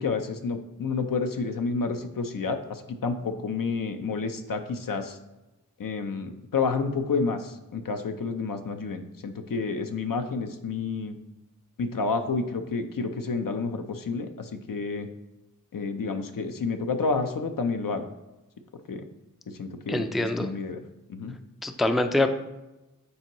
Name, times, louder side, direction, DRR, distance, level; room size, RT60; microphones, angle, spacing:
voice 1, 0.0-5.2 5.8-11.2 11.8-15.1 15.7-18.1 18.9-19.0 19.5-20.8 21.1-21.4, left 4 dB, 70° left, 7 dB, 0.6 m, -30 dB
voice 2, 19.9-20.5 21.6-22.3, left 1 dB, ahead, 8 dB, 0.4 m, -24 dB
8.3 x 4.5 x 3.0 m, 1.0 s
wide cardioid pair, 55°, 35 cm